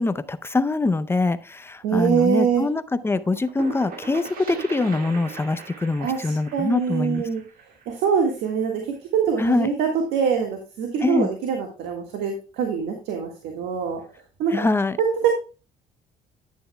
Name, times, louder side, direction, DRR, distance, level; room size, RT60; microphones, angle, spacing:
voice 1, 0.0-7.2 9.4-9.7 11.0-11.3 14.5-15.0, left 3 dB, 15° left, 13 dB, 0.6 m, -24 dB
voice 2, 1.8-2.6 6.0-7.4 7.9-14.0 14.4-14.6 15.0-15.3, right 7 dB, 85° right, 3 dB, 1.7 m, -24 dB
sound 1, 3.1-8.7, right 5 dB, 60° right, 2.0 m, -39 dB
11.0 x 9.3 x 2.3 m, 0.33 s
cardioid pair, 110°, 17 cm